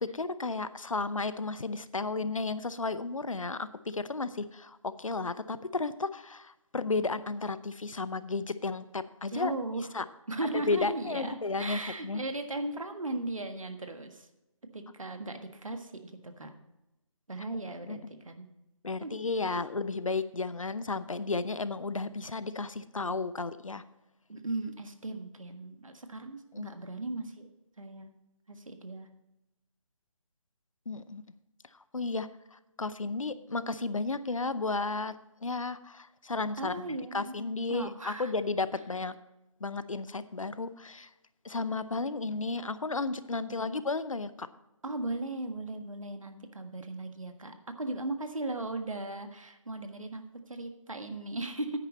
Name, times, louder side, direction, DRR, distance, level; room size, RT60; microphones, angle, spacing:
voice 1, 0.0-9.5 9.9-10.1 10.5-12.2 17.9-18.0 18.8-23.8 26.5-26.7 30.9-31.2 31.9-35.1 35.4-36.9 37.1-39.2 39.6-41.1 41.4-44.5, left 3 dB, 70° left, 14 dB, 0.7 m, -33 dB
voice 2, 9.3-9.9 10.3-14.3 14.7-16.5 17.3-18.5 19.0-19.2 19.4-19.6 24.3-27.5 27.8-28.1 28.5-29.1 36.6-37.3 37.7-38.3 43.5-43.8 44.8-51.8, right 2 dB, 75° right, 7 dB, 1.5 m, -37 dB
10.5 x 9.2 x 4.2 m, 0.93 s
figure-of-eight pair, 155°, 17 cm